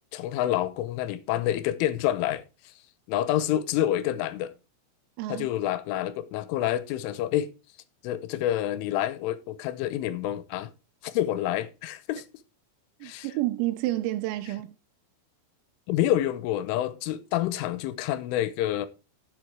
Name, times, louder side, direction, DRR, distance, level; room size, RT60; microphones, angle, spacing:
voice 1, 0.1-2.7 3.1-4.5 5.3-7.5 8.0-10.7 11.0-12.2 13.0-13.3 15.9-18.9, left 12 dB, 80° left, 3.2 m, -28 dB
voice 2, 5.2-5.5 13.0-14.8, right 16 dB, 90° right, 3.4 m, -29 dB
11.5 x 7.4 x 4.6 m
omnidirectional pair, 5.9 m